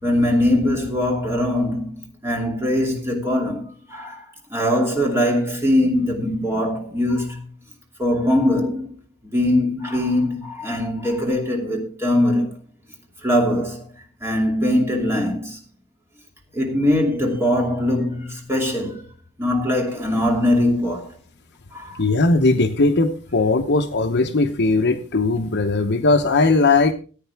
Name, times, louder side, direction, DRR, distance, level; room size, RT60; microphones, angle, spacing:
voice 1, 0.0-4.2 4.5-7.4 8.0-9.0 9.3-12.6 13.2-13.8 14.2-15.6 16.5-19.0 19.4-21.1 21.7-22.0, left 1 dB, 10° right, 2.7 m, -21 dB
voice 2, 22.0-26.9, left 3 dB, 50° left, 1.0 m, -18 dB
15.0 x 9.1 x 3.5 m
head